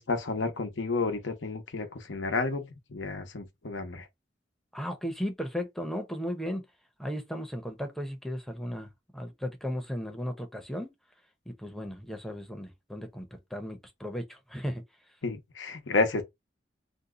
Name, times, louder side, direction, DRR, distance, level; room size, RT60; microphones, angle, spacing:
voice 1, 0.0-4.0 15.2-16.2, left 3 dB, 90° left, 0.8 m, -31 dB
voice 2, 4.7-6.6 7.0-10.9 11.5-13.3 13.5-14.8, equal, ahead, 0.6 m, -35 dB
2.7 x 2.3 x 3.6 m
head